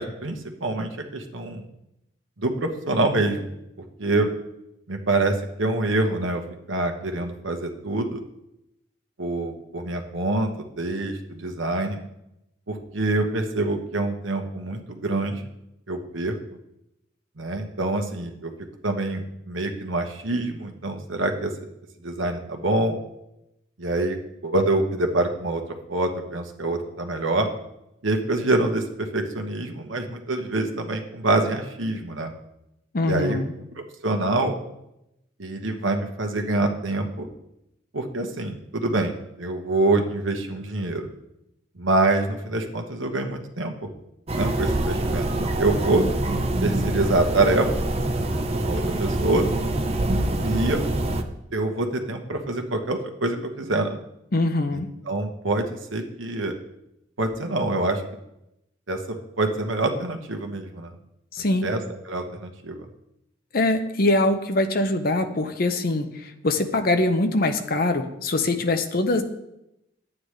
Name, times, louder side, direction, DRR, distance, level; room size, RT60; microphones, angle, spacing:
voice 1, 0.0-1.6 2.4-3.5 4.0-4.3 4.9-6.4 6.7-8.2 9.2-12.0 12.7-15.4 15.9-16.3 17.4-18.5 18.8-21.5 22.0-23.0 23.8-24.2 24.4-25.6 25.9-27.5 28.0-32.3 33.0-33.4 33.8-34.6 35.4-37.3 37.9-41.1 41.8-43.9 44.4-45.3 45.6-46.1 46.6-47.8 48.5-49.5 50.4-50.8 51.5-53.9 54.7-54.8 55.1-56.5 57.2-58.0 58.9-60.9 61.6-61.8 62.1-62.8, right 2 dB, 90° right, 4 dB, 1.2 m, -25 dB
voice 2, 32.9-33.5 54.3-54.9 61.3-61.7 63.5-69.2, left 2 dB, 50° left, 7 dB, 0.8 m, -23 dB
sound 1, 44.3-51.2, right 1 dB, 30° right, 0.6 m, -25 dB
11.5 x 8.8 x 3.3 m, 0.85 s
head